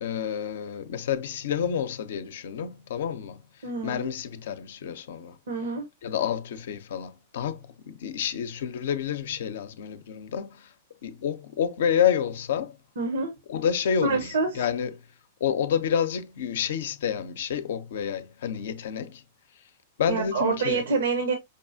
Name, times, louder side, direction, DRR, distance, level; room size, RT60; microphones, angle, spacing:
voice 1, 0.0-5.4 6.0-10.7 11.0-12.8 13.5-15.0 15.4-19.2 20.0-20.8, left 8 dB, 70° left, 0.5 m, -29 dB
voice 2, 3.6-4.1 5.5-5.8 13.0-13.3 14.0-14.5 20.1-21.3, right 4 dB, 75° right, 0.8 m, -26 dB
5.2 x 2.4 x 2.6 m
hypercardioid pair, 115°, 0 cm